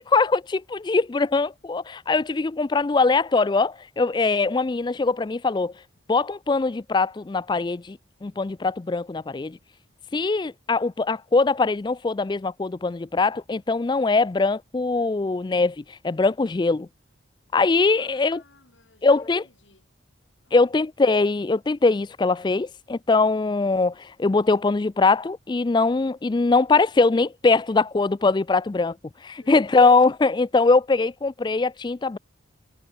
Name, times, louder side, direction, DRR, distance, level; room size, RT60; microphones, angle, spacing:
voice 1, 0.0-5.7 6.1-9.6 10.1-16.9 17.5-18.4 19.0-19.4 20.5-29.0 29.2-32.2, left 3 dB, 25° left, 0.3 m, -22 dB
voice 2, 17.9-19.9 20.4-20.8 29.4-29.6, left 3 dB, 70° left, 5.4 m, -56 dB
head